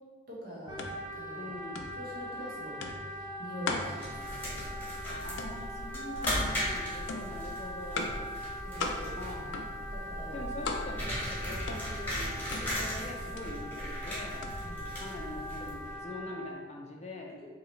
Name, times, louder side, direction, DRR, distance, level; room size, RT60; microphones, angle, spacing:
voice 1, 0.3-0.8 1.2-1.5 2.0-4.6 8.6-9.2 9.9-10.5 14.6-14.9 17.4-17.5, equal, 50° right, -5 dB, 1.2 m, -44 dB
sound 1, 0.7-15.8, left 3 dB, 90° left, 0.4 m, -41 dB
Wind instrument woodwind instrument, 0.7-16.5, equal, 25° right, 0.8 m, -42 dB
voice 2, 1.4-2.0 5.2-8.1 9.2-9.6 10.2-14.4 14.9-17.3, left 2 dB, 35° left, 0 dB, 0.5 m, -43 dB
sound 2, 3.9-16.0, equal, 10° left, 1.1 m, -38 dB
4.7 x 2.9 x 3.2 m, 1.4 s
head